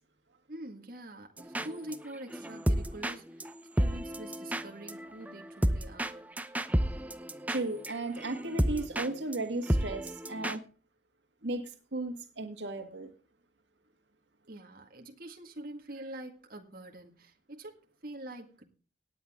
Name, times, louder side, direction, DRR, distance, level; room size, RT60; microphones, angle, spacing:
voice 1, 0.5-3.5 3.8-6.3 14.5-18.7, right 1 dB, 55° right, 3 dB, 2.0 m, -45 dB
sound 1, 1.4-2.0 2.3-9.1 9.3-9.4 9.7-10.6, equal, 10° right, 0.7 m, -31 dB
voice 2, 7.5-10.6 11.4-13.1, right 2 dB, 85° right, 5 dB, 1.8 m, -35 dB
18.0 x 9.4 x 3.7 m, 0.36 s
head